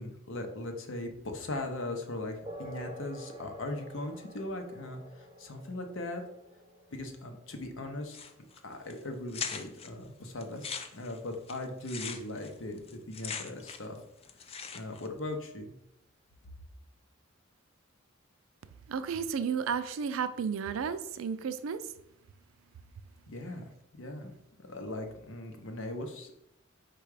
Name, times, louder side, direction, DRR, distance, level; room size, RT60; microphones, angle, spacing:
voice 1, 0.0-6.2 6.9-8.2 8.6-14.0 14.7-15.6 23.3-23.6 23.9-26.3, left 1 dB, 70° left, 4 dB, 0.7 m, -39 dB
sound 1, 2.5-10.5, equal, 25° right, 0.7 m, -49 dB
sound 2, 8.1-8.6 8.9-9.0 9.3-9.9 10.4-14.0 14.2-15.1, left 6 dB, 30° left, 0.4 m, -40 dB
voice 2, 18.9-21.9, right 6 dB, 85° right, 11 dB, 0.4 m, -33 dB
4.7 x 2.3 x 4.7 m, 0.78 s
head